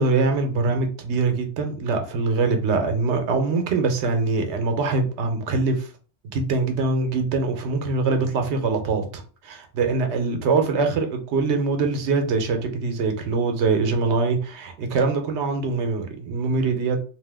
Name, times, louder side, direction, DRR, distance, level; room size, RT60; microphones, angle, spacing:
voice 1, 0.0-5.9 6.2-17.0, right 4 dB, 80° right, 0.9 m, -23 dB
2.9 x 2.0 x 3.3 m
omnidirectional pair, 1.2 m